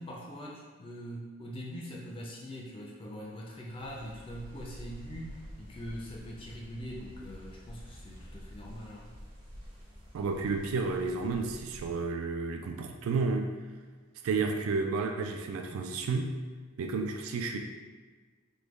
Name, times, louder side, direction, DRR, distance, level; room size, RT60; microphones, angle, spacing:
voice 1, 0.0-9.1, equal, 25° left, -2 dB, 0.3 m, -43 dB
sound 1, 3.8-11.9, equal, 25° right, 0.6 m, -48 dB
voice 2, 10.1-13.5 14.2-16.4 16.8-17.6, right 4 dB, 85° right, 4 dB, 0.3 m, -31 dB
3.4 x 2.1 x 3.1 m, 1.4 s
head